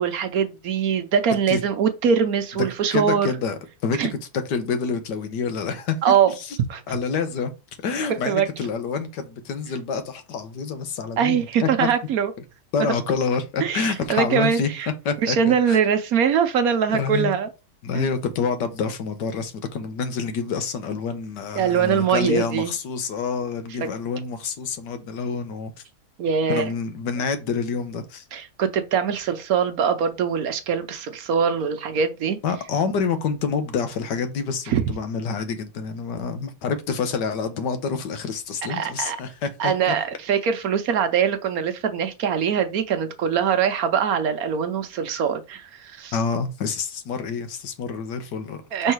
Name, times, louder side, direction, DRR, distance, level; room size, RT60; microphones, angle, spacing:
voice 1, 0.0-3.3 4.0-4.1 6.0-6.3 6.7-6.8 8.3-8.5 11.2-12.3 12.8-12.9 13.6-14.9 15.2-17.5 17.9-18.1 21.6-22.7 26.2-26.7 28.3-32.4 34.7-34.8 38.7-39.2 39.6-46.1 48.7-48.9, right 7 dB, 65° right, 1.1 m, -22 dB
voice 2, 2.9-4.2 4.4-6.0 6.9-7.5 7.8-11.9 12.7-14.7 15.0-15.8 16.9-17.4 17.8-25.7 26.5-28.2 32.4-39.9 46.1-48.6 48.8-48.9, left 5 dB, 90° left, 1.6 m, -27 dB
5.5 x 3.7 x 4.6 m
omnidirectional pair, 1.8 m